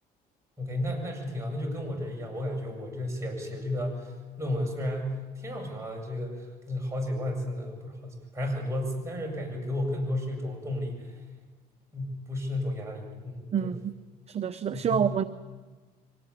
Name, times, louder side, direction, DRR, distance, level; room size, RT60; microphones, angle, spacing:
voice 1, 0.6-11.1 11.9-13.7 14.7-15.1, left 1 dB, 15° right, 0 dB, 7.8 m, -33 dB
voice 2, 13.5-13.9 14.3-15.2, right 8 dB, 40° right, 11 dB, 0.8 m, -27 dB
24.5 x 18.5 x 10.0 m, 1.4 s
cardioid pair, 110°, 17 cm